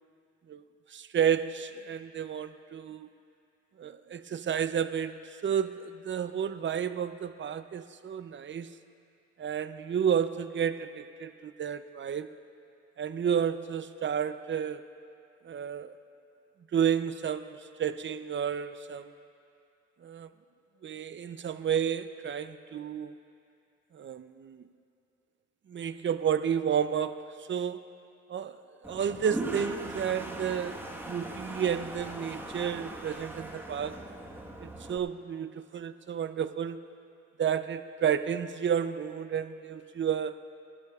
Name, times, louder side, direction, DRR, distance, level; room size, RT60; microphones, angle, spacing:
voice 1, 0.9-3.1 3.8-8.8 9.4-12.3 13.0-14.8 15.4-15.9 16.7-19.1 20.0-20.3 20.8-23.2 23.9-24.7 25.7-27.8 28.3-34.0 34.6-36.8 37.4-40.4, right 8 dB, 40° right, 12 dB, 0.6 m, -31 dB
Toilet flush, 28.8-35.0, right 1 dB, 5° right, 1.4 m, -39 dB
25.5 x 12.0 x 2.4 m, 2.5 s
cardioid pair, 90°, 30 cm